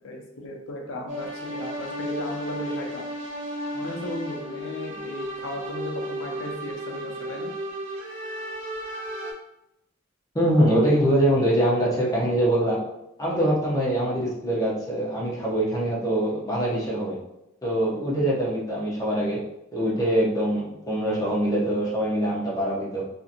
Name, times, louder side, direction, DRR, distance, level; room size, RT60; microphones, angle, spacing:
voice 1, 0.0-3.1 3.7-7.5, left 1 dB, 70° left, 0 dB, 0.6 m, -35 dB
sound 1, 1.1-9.3, right 1 dB, 65° right, 0.7 m, -34 dB
voice 2, 10.3-12.8 13.2-17.1 17.6-19.4 19.7-23.0, right 1 dB, 15° left, -5 dB, 0.7 m, -23 dB
2.8 x 2.6 x 2.5 m, 0.85 s
head